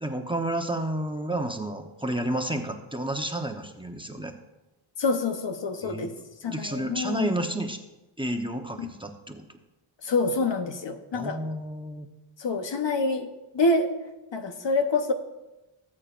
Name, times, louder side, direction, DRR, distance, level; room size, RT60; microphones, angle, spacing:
voice 1, 0.0-4.3 5.8-6.1 6.4-7.8 8.2-9.6 11.1-12.1, right 1 dB, 10° right, 4 dB, 0.9 m, -31 dB
voice 2, 5.0-6.1 6.4-7.3 10.0-11.4 12.4-13.3 13.5-13.9 14.3-15.1, left 3 dB, 60° left, 6 dB, 1.1 m, -26 dB
18.0 x 8.6 x 2.6 m, 1.0 s
cardioid pair, 70°, 49 cm